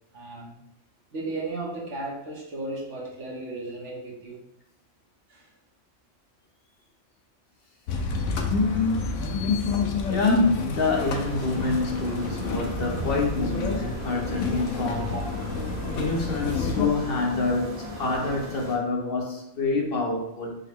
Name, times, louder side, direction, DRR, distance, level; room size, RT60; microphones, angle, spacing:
voice 1, 0.1-0.5 1.1-4.4 5.3-5.5 15.1-15.2, right 2 dB, 75° right, -2 dB, 1.3 m, -35 dB
sound 1, 7.9-16.9, left 4 dB, 90° left, 1.0 m, -28 dB
voice 2, 8.5-9.2 10.1-15.1 15.9-20.6, left 3 dB, 55° left, 0 dB, 0.9 m, -27 dB
sound 2, 10.8-18.8, right 1 dB, 35° right, 0.8 m, -37 dB
5.5 x 2.2 x 3.5 m, 0.78 s
omnidirectional pair, 1.2 m